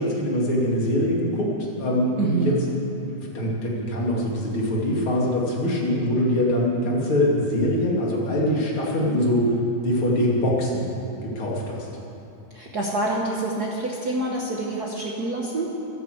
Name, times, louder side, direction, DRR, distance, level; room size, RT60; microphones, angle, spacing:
voice 1, 0.0-1.5 1.8-2.5 3.1-9.6 9.8-10.9 11.2-11.9, left 1 dB, 45° left, -4 dB, 3.2 m, -23 dB
voice 2, 2.2-2.6 12.5-15.7, right 2 dB, 80° right, -2 dB, 0.8 m, -27 dB
12.5 x 12.0 x 7.9 m, 2.8 s
omnidirectional pair, 3.7 m